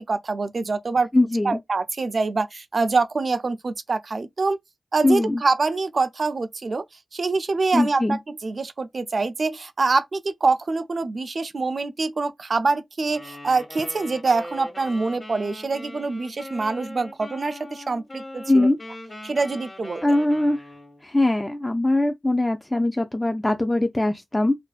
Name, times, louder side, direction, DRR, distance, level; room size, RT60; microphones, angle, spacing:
voice 1, 0.1-1.1 1.4-4.6 4.9-6.8 7.1-18.7 19.2-20.0, right 3 dB, 65° right, 0.3 m, -25 dB
voice 2, 1.1-1.6 5.0-5.4 7.7-8.2 18.5-18.8 20.0-20.6 21.0-24.5, left 2 dB, 20° left, 0.3 m, -21 dB
Wind instrument woodwind instrument, 13.0-21.0, left 1 dB, 45° left, 1.2 m, -40 dB
2.5 x 2.1 x 2.3 m
cardioid pair, 40°, 0 cm